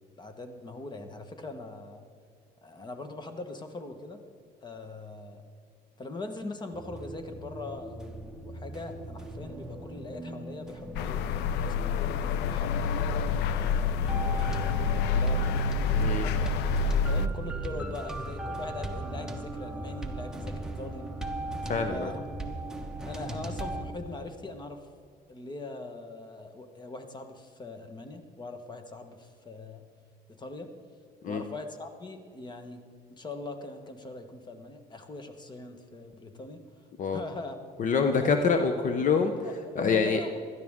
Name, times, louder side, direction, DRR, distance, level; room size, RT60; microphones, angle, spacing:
voice 1, 0.2-2.0 2.6-4.2 4.6-5.4 6.0-12.0 12.5-15.4 16.0-16.6 17.1-21.1 21.9-22.2 23.0-24.8 25.3-29.8 30.3-30.7 31.2-32.8 33.1-36.6 37.1-37.6 38.1-38.3 39.4-40.4, left 2 dB, 25° left, 7 dB, 1.4 m, -41 dB
sound 1, 6.7-23.8, right 1 dB, 5° right, 1.2 m, -38 dB
sound 2, 11.0-17.3, left 5 dB, 85° left, 0.6 m, -27 dB
voice 2, 21.6-22.1 31.2-31.4 37.0-37.2 37.8-39.3 39.7-40.2, left 5 dB, 50° left, 6 dB, 0.9 m, -25 dB
16.5 x 12.5 x 3.7 m, 2.2 s
cardioid pair, 110°, 17 cm